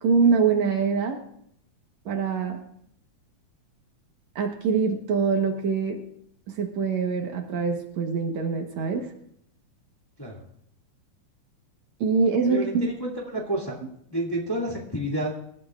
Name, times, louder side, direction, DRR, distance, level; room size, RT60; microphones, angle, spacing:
voice 1, 0.0-1.2 2.1-2.6 4.4-6.0 6.6-9.1 12.0-12.9, right 5 dB, 65° right, 3 dB, 2.4 m, -24 dB
voice 2, 12.5-13.8 14.1-15.3, right 1 dB, 10° left, -2 dB, 1.9 m, -29 dB
26.5 x 13.5 x 2.5 m, 0.70 s
omnidirectional pair, 3.6 m